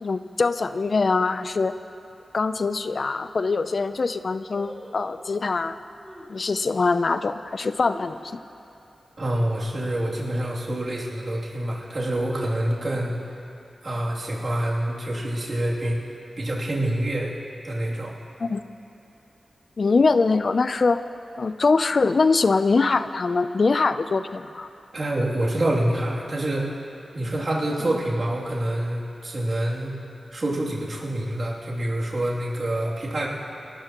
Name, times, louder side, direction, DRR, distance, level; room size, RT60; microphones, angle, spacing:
voice 1, 0.0-1.7 2.3-5.8 6.3-8.2 18.4-18.6 19.8-21.0 21.4-24.7, left 4 dB, 50° left, 12 dB, 0.5 m, -23 dB
sound 1, 2.5-2.6 3.2-3.3 3.5-3.9 4.5-5.3 6.0-6.4 6.9-7.0 7.6-8.7 9.0-9.1 9.4-9.8 10.2-10.6 11.2-11.9 12.2-12.3, right 1 dB, 10° right, 3.8 m, -44 dB
voice 2, 9.2-13.1 13.8-16.0 16.4-17.3 17.6-18.1 24.9-26.7 27.1-30.0 30.3-33.3, right 1 dB, 45° right, -5 dB, 2.7 m, -26 dB
28.5 x 13.0 x 3.0 m, 2.7 s
wide cardioid pair, 125°, 0 cm